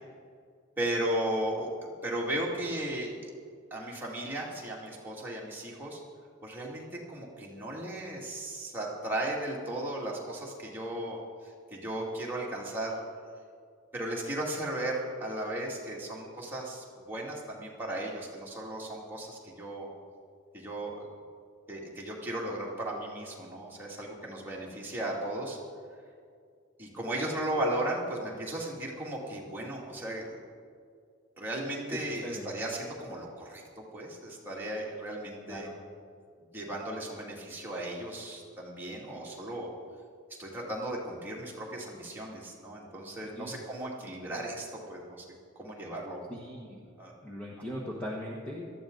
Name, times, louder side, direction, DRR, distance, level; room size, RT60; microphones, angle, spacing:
voice 1, 0.8-3.3 3.7-6.0 6.4-13.0 13.9-19.9 20.5-21.1 21.7-25.6 26.8-30.4 31.4-33.6 33.9-35.7 36.5-39.7 40.4-45.3 45.6-46.2 47.0-47.1, right 1 dB, 10° right, -4 dB, 2.4 m, -36 dB
voice 2, 31.9-32.5 35.5-35.7 43.3-43.5 46.3-46.9 47.2-48.7, equal, 5° left, -4 dB, 1.3 m, -39 dB
18.0 x 13.5 x 3.9 m, 2.2 s
head